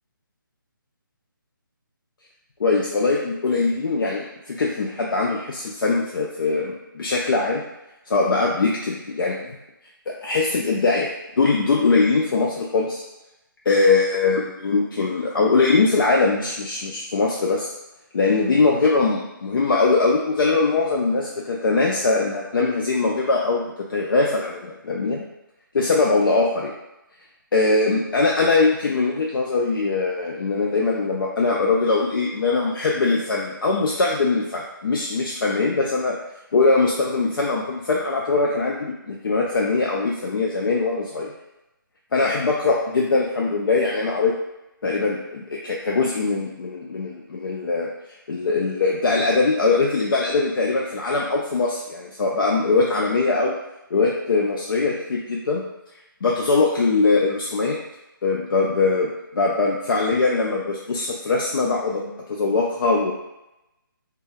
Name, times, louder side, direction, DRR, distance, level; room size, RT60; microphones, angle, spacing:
voice 1, 2.6-7.6 8.1-9.4 10.2-11.1 11.4-13.0 13.7-17.7 18.1-25.2 25.7-26.7 27.5-36.2 36.5-41.3 42.1-44.4 44.8-47.9 48.3-53.6 53.9-55.6 56.2-57.8 58.2-63.1, left 3 dB, 70° left, -2 dB, 0.4 m, -21 dB
2.2 x 2.1 x 3.2 m, 0.94 s
figure-of-eight pair, 155°, 12 cm